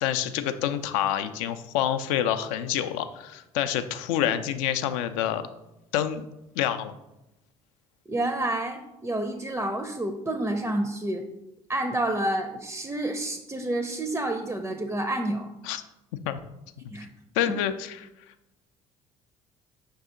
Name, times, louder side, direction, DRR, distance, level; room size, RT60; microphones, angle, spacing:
voice 1, 0.0-5.4 5.9-6.3 6.6-6.9 15.6-15.8 16.2-16.4 16.8-16.9 17.4-18.1, left 10 dB, 70° left, 10 dB, 0.4 m, -27 dB
voice 2, 8.1-11.2 11.7-15.5 16.9-17.1, right 1 dB, 15° right, 6 dB, 0.4 m, -29 dB
5.5 x 2.7 x 3.6 m, 0.91 s
hypercardioid pair, 55°, 18 cm